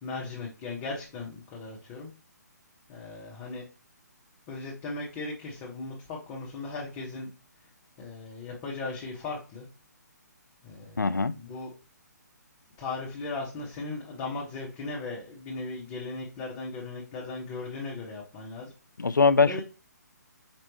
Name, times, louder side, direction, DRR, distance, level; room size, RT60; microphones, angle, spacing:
voice 1, 0.0-2.1 2.9-3.7 4.5-7.3 8.0-9.7 10.6-11.7 12.8-18.7 19.4-19.6, left 3 dB, 25° left, 1.3 m, -37 dB
voice 2, 11.0-11.3 19.0-19.6, left 4 dB, 90° left, 0.4 m, -22 dB
5.2 x 3.1 x 3.0 m
figure-of-eight pair, 140°, 10 cm